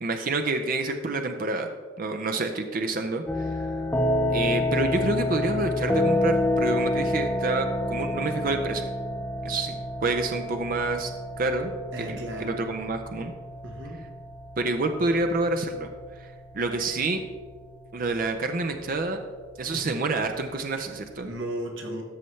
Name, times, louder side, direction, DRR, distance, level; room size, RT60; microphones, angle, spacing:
voice 1, 0.0-1.7 2.0-3.7 4.3-8.8 9.4-11.1 11.4-11.7 12.0-13.3 14.6-17.2 17.9-19.2 19.6-21.3, right 3 dB, 45° right, 5 dB, 0.5 m, -28 dB
sound 1, 3.3-21.2, left 1 dB, 10° left, 0.5 m, -29 dB
voice 2, 11.9-12.6 13.6-14.0 19.6-20.0 21.2-22.0, right 1 dB, 65° right, 2 dB, 1.2 m, -35 dB
13.0 x 5.6 x 3.2 m, 1.5 s
head